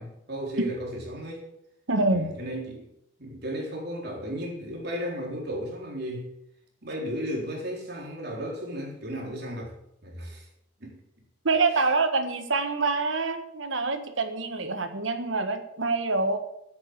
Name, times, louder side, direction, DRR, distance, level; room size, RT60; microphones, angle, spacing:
voice 1, 0.0-1.4 2.1-2.9 3.2-6.3 6.8-9.7 10.0-10.5 10.8-11.0 11.7-11.8, equal, 55° right, -1 dB, 3.9 m, -34 dB
voice 2, 1.9-2.3 11.4-16.4, right 3 dB, 75° right, 8 dB, 1.5 m, -26 dB
9.8 x 8.7 x 8.1 m, 0.81 s
head